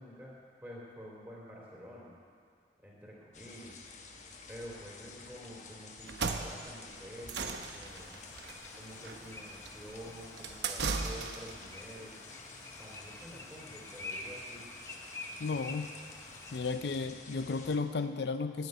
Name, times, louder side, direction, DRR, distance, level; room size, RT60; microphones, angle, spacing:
voice 1, 0.0-2.1 2.8-3.7 4.5-8.2 8.7-12.2 12.8-14.7, equal, 10° right, -4 dB, 3.5 m, -49 dB
sound 1, 3.3-17.8, left 4 dB, 40° left, 1.1 m, -51 dB
sound 2, 6.0-11.6, right 4 dB, 80° right, 0.9 m, -37 dB
sound 3, 7.9-16.7, left 2 dB, 15° left, 1.0 m, -48 dB
voice 2, 15.4-15.9 16.5-18.7, left 4 dB, 70° left, 9 dB, 0.5 m, -34 dB
10.5 x 9.5 x 9.1 m, 2.3 s
head